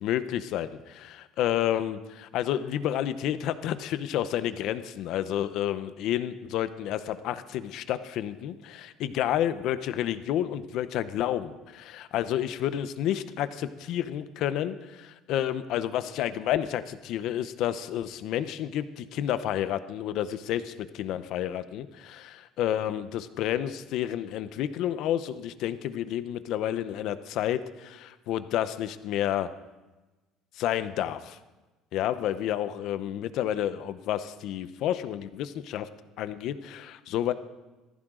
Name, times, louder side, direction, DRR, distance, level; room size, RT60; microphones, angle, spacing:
voice 1, 0.0-29.5 30.6-31.4 31.9-35.9 36.2-37.3, left 11 dB, 55° left, 13 dB, 0.7 m, -30 dB
19.0 x 15.0 x 3.8 m, 1.1 s
cardioid pair, 170°, 0 cm